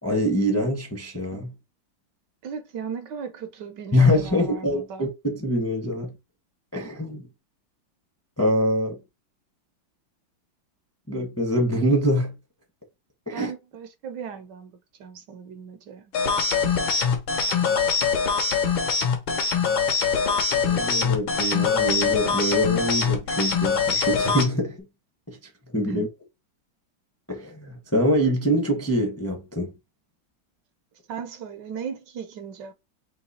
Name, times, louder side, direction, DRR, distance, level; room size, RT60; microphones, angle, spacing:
voice 1, 0.0-1.5 3.9-6.1 6.7-7.2 8.4-9.0 11.1-12.3 13.3-13.5 20.6-24.8 25.3-25.4 25.7-26.1 27.3-29.7, equal, 10° left, 0.7 m, -24 dB
voice 2, 2.4-5.1 13.3-16.1 25.9-26.1 31.1-32.7, right 6 dB, 70° right, 1.2 m, -37 dB
sound 1, 16.1-24.5, left 5 dB, 80° left, 1.8 m, -23 dB
3.9 x 3.0 x 4.1 m
omnidirectional pair, 2.1 m